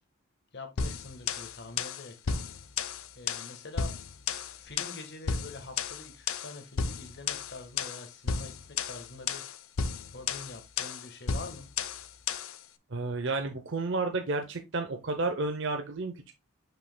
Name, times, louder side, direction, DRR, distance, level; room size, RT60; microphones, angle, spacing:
voice 1, 0.5-2.4 3.1-3.9 4.6-8.5 8.8-9.4 10.1-11.7, left 3 dB, 55° left, 1.4 m, -45 dB
sound 1, 0.8-12.6, left 5 dB, 75° left, 0.6 m, -34 dB
voice 2, 12.9-16.3, right 3 dB, 60° right, 0.7 m, -31 dB
7.6 x 5.6 x 2.2 m
head